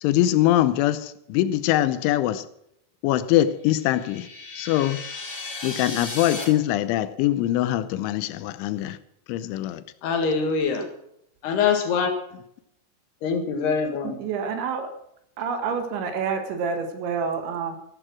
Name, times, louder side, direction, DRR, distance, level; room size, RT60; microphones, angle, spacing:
voice 1, 0.0-2.5 3.0-4.3 4.6-5.0 5.6-9.0 9.3-9.8, left 13 dB, 85° left, 3.2 m, -23 dB
sound 1, 3.7-6.4, left 3 dB, 30° left, 5.5 m, -35 dB
voice 2, 10.0-10.9 11.4-12.1 13.2-14.2, left 5 dB, 65° left, 3.6 m, -23 dB
voice 3, 14.0-14.9 15.4-17.8, right 5 dB, 70° right, 3.9 m, -28 dB
14.5 x 12.5 x 6.2 m
omnidirectional pair, 5.5 m